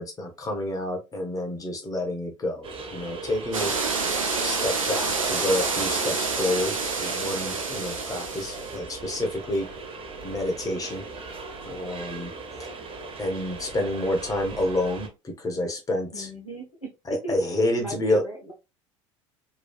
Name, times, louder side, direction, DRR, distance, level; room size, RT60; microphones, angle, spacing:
voice 1, 0.0-3.7 4.4-9.7 10.2-11.0 11.6-12.3 12.6-12.8 13.2-16.3 17.1-18.2, left 1 dB, 20° left, 3 dB, 1.0 m, -29 dB
sound 1, 2.6-15.1, right 3 dB, 35° right, 0.8 m, -39 dB
sound 2, 3.5-8.8, right 4 dB, 85° right, 0.6 m, -28 dB
voice 2, 16.1-16.9 17.2-17.3 17.8-18.5, right 2 dB, 90° left, 0 dB, 0.8 m, -37 dB
3.1 x 2.3 x 2.3 m, 0.26 s
figure-of-eight pair, 70°, 17 cm